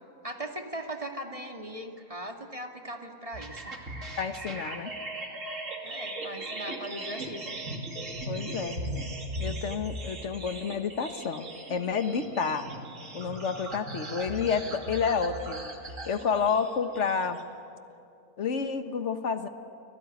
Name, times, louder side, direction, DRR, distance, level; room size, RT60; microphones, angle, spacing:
voice 1, 0.2-3.8 5.8-7.6, right 1 dB, 25° right, 2 dB, 2.2 m, -39 dB
sound 1, 3.3-17.4, right 1 dB, 55° right, 2.9 m, -38 dB
voice 2, 4.2-4.9 8.3-9.1 9.4-12.7 13.1-15.7 16.1-17.4 18.4-19.5, left 6 dB, 50° left, 8 dB, 1.6 m, -30 dB
30.0 x 20.5 x 9.6 m, 2.6 s
omnidirectional pair, 1.6 m